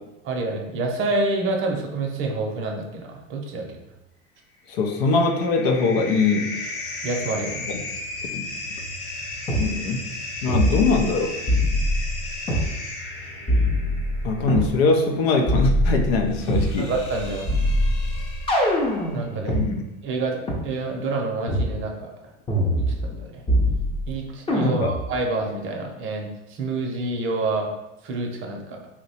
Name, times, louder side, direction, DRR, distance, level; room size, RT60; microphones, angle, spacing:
voice 1, 0.2-3.8 7.0-7.7 16.8-17.5 19.1-19.6 20.0-22.1 22.8-23.4 24.1-27.7 28.0-28.9, right 3 dB, 40° right, 1 dB, 0.7 m, -28 dB
voice 2, 4.7-6.5 7.7-7.8 8.3-8.5 9.6-10.1 10.4-11.3 14.2-16.9 19.5-19.8 24.5-24.9, left 3 dB, 75° left, 5 dB, 0.6 m, -22 dB
sound 1, 4.7-19.2, left 2 dB, 50° left, 1.0 m, -35 dB
sound 2, 9.5-9.7 10.5-11.1 11.5-12.7 13.5-14.7 15.5-16.7 17.5-19.6 20.5-20.6 21.5-21.7 22.5-23.2 23.5-24.1 24.5-25.1, equal, 15° left, 0.7 m, -23 dB
2.9 x 2.2 x 4.2 m, 0.94 s
supercardioid pair, 120°, 32 cm